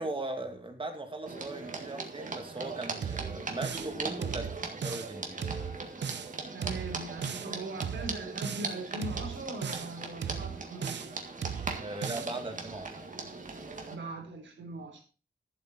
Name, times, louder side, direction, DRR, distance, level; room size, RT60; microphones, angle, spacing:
voice 1, 0.0-5.5 11.7-12.9, right 2 dB, 25° right, 5 dB, 2.3 m, -39 dB
sound 1, 1.3-13.9, right 3 dB, 45° right, 1.9 m, -40 dB
sound 2, 3.0-3.9 4.2-5.1 5.4-6.3 6.6-7.5 7.8-8.7 9.0-9.9 10.2-11.1 11.4-12.3, right 7 dB, 70° right, 0.7 m, -37 dB
voice 2, 6.5-11.2 13.9-15.0, right 2 dB, 90° right, 2 dB, 3.5 m, -40 dB
12.0 x 7.7 x 4.2 m, 0.36 s
wide cardioid pair, 120°, 19 cm